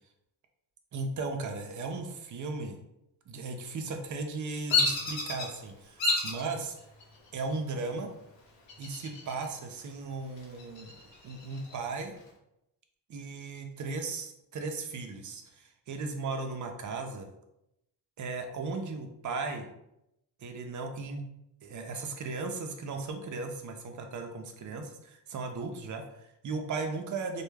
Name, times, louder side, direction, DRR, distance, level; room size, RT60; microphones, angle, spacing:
voice 1, 0.9-2.8 3.3-6.7 7.3-8.1 8.8-10.9 11.2-12.1 13.1-17.3 18.2-19.6 20.4-21.2 21.6-27.4, right 3 dB, 45° right, 5 dB, 0.5 m, -36 dB
Bird vocalization bird call bird song, 4.7-5.5 6.0-6.4 7.0-7.5 8.7-9.5 9.8-9.9 10.4-11.8, left 3 dB, 75° left, 0.9 m, -29 dB
2.2 x 2.1 x 3.2 m, 0.84 s
cardioid pair, 85°, 45 cm